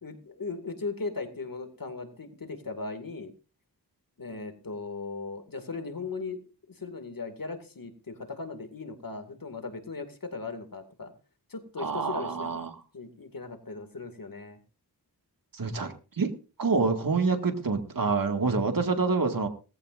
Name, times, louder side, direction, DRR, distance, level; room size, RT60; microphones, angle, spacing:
voice 1, 0.0-3.3 4.2-6.4 6.8-11.1 11.5-12.5 12.9-14.6, left 3 dB, 55° left, 7 dB, 2.3 m, -38 dB
voice 2, 11.8-12.7 15.5-16.3 16.6-19.5, right 4 dB, 55° right, 5 dB, 2.1 m, -27 dB
18.5 x 15.0 x 2.6 m, 0.34 s
wide cardioid pair, 75°, 40 cm